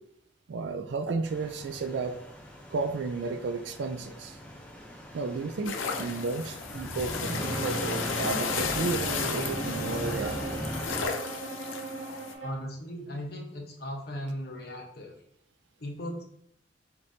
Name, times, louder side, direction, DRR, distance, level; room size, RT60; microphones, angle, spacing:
voice 1, 0.5-2.2 2.7-4.4 5.1-10.7, right 4 dB, 60° right, 8 dB, 0.3 m, -33 dB
sound 1, 1.2-11.1, equal, 5° left, 0.6 m, -39 dB
sound 2, 5.6-12.3, left 5 dB, 90° left, 0.5 m, -34 dB
Bowed string instrument, 7.3-12.7, right 3 dB, 85° right, 1.3 m, -39 dB
voice 2, 12.4-15.2 15.8-16.2, equal, 50° left, 0 dB, 0.9 m, -37 dB
5.0 x 2.9 x 2.6 m, 0.72 s
head